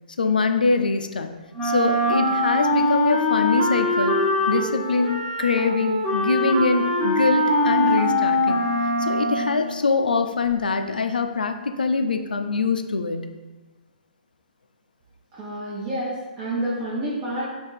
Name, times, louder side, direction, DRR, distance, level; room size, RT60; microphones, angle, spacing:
voice 1, 0.2-1.4 1.6-4.2 4.5-8.6 9.0-13.3, left 4 dB, 70° left, 7 dB, 0.4 m, -23 dB
Wind instrument woodwind instrument, 1.6-9.7, left 1 dB, ahead, 1.0 m, -22 dB
voice 2, 15.3-17.6, right 1 dB, 30° right, -7 dB, 0.8 m, -29 dB
3.5 x 2.9 x 4.5 m, 1.2 s
figure-of-eight pair, 120°, 5 cm